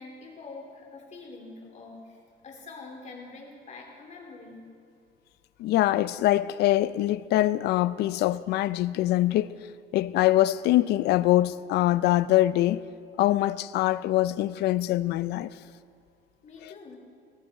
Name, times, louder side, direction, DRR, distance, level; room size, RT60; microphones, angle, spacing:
voice 1, 0.0-4.7 16.4-17.0, left 3 dB, 45° left, 3.3 m, -45 dB
voice 2, 5.6-9.5 9.9-12.8 13.2-15.5 16.6-16.7, left 15 dB, 75° left, 0.5 m, -23 dB
18.5 x 14.0 x 4.3 m
cardioid pair, 110°, 17 cm